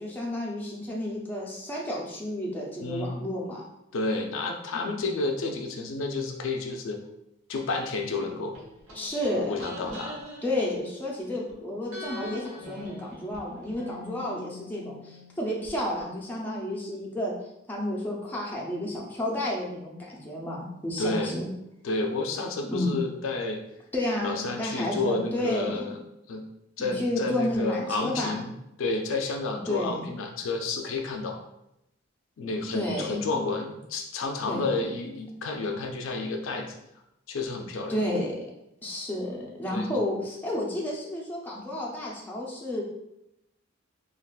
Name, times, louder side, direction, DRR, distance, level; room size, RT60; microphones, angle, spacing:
voice 1, 0.0-3.6 4.7-5.0 8.9-10.0 10.4-17.3 17.7-21.5 22.7-23.0 23.9-26.0 26.8-28.4 29.7-30.0 32.7-33.2 34.5-34.8 37.9-38.4 38.8-42.8, left 1 dB, 10° left, -4 dB, 0.5 m, -31 dB
voice 2, 2.8-3.2 3.9-7.0 7.5-8.6 9.5-10.2 21.0-21.4 21.8-23.6 24.2-26.0 26.3-26.4 26.8-28.5 28.8-31.4 32.4-36.7 37.3-38.0 39.7-39.9, left 3 dB, 70° left, 3 dB, 0.4 m, -30 dB
sound 1, 8.5-11.5 11.9-15.7 16.0-16.1, left 1 dB, 85° right, 1.0 m, -43 dB
3.5 x 2.4 x 2.3 m, 0.84 s
head